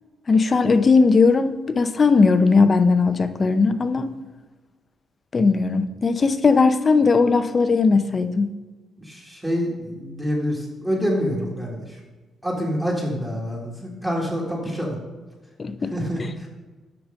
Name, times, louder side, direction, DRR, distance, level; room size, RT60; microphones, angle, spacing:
voice 1, 0.3-4.1 5.3-8.5 15.6-15.9, left 4 dB, 35° left, 10 dB, 0.6 m, -18 dB
voice 2, 9.0-12.0 12.4-15.0 15.8-16.5, equal, 10° right, -4 dB, 1.7 m, -27 dB
6.3 x 4.8 x 5.1 m, 1.2 s
cardioid pair, 90°, 0 cm